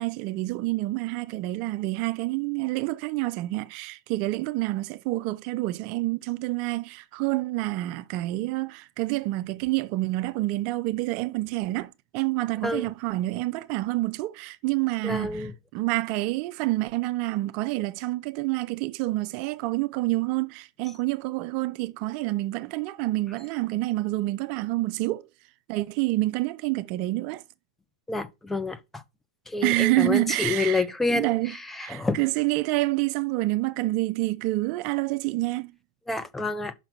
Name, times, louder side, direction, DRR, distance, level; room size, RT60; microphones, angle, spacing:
voice 1, 0.0-25.3 25.7-27.4 29.6-31.6 31.8-35.7, right 19 dB, 50° right, 0.5 m, -28 dB
voice 2, 15.0-15.5 28.1-29.0 29.5-32.2 36.1-36.7, left 3 dB, 10° left, 0.9 m, -28 dB
6.0 x 5.8 x 5.5 m
hypercardioid pair, 115°, 2 cm